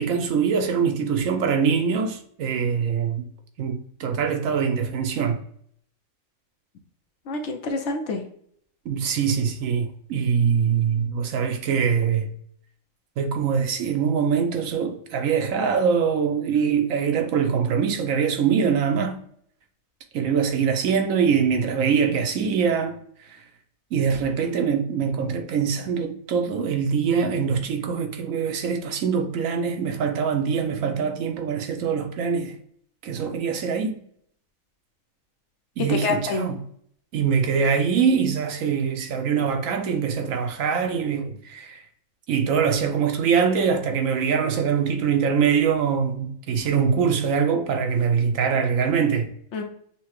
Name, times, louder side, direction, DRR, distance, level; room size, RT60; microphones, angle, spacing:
voice 1, 0.0-3.3 3.6-5.4 8.8-12.3 13.2-19.2 20.1-23.0 23.2-23.4 23.9-32.6 33.0-34.0 35.8-36.6 37.1-41.9 42.3-49.3, right 6 dB, 75° right, 1.0 m, -23 dB
voice 2, 7.3-8.2 35.8-36.5 49.5-49.6, left 3 dB, 65° left, 0.9 m, -27 dB
5.7 x 2.1 x 3.0 m
omnidirectional pair, 1.4 m